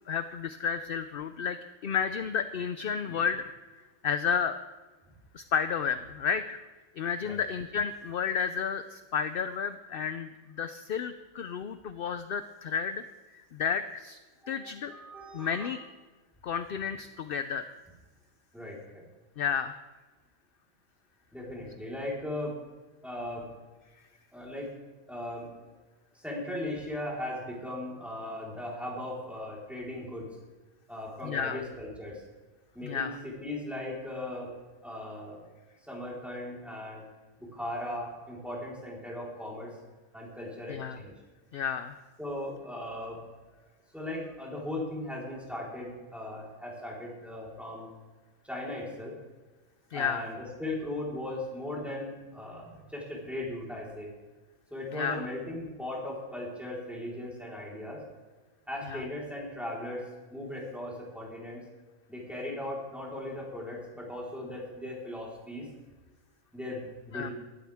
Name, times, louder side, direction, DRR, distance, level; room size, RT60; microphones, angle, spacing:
voice 1, 0.1-3.4 4.0-4.5 5.3-6.6 7.0-13.0 13.3-14.2 14.5-14.9 15.3-15.8 16.4-17.7 19.4-19.8 31.2-31.6 32.8-33.2 40.7-41.0 41.5-42.0 49.9-50.2 54.9-55.2 58.9-59.1 67.1-67.3, left 7 dB, 55° left, 10 dB, 0.6 m, -31 dB
voice 2, 14.4-15.7 18.5-19.0 21.3-22.6 23.0-23.5 24.3-24.7 25.1-25.5 26.1-30.3 30.9-32.2 32.7-34.5 34.8-35.4 35.8-37.0 37.4-39.7 40.1-41.1 42.2-43.2 43.9-47.9 48.4-49.1 49.9-54.1 54.7-58.0 58.7-60.0 60.3-61.6 62.1-65.7 66.5-67.3, left 1 dB, ahead, -5 dB, 4.1 m, -38 dB
19.5 x 13.0 x 3.6 m, 1.3 s
omnidirectional pair, 1.4 m